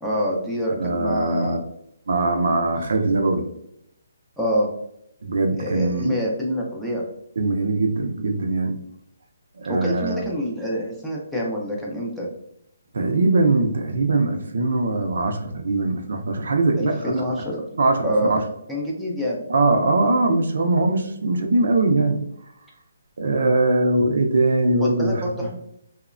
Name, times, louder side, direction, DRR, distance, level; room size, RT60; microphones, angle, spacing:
voice 1, 0.0-1.6 2.7-2.8 4.4-4.7 5.5-7.0 9.7-12.3 16.8-17.6 18.0-18.4 18.7-19.4 24.8-25.6, equal, ahead, -5 dB, 0.4 m, -26 dB
voice 2, 0.8-1.6 2.1-3.4 5.2-6.1 7.4-8.7 9.6-10.2 12.9-17.2 17.8-18.5 19.5-22.2 23.2-25.5, right 2 dB, 70° right, 5 dB, 0.4 m, -21 dB
2.9 x 2.0 x 2.4 m, 0.76 s
hypercardioid pair, 160°, 0 cm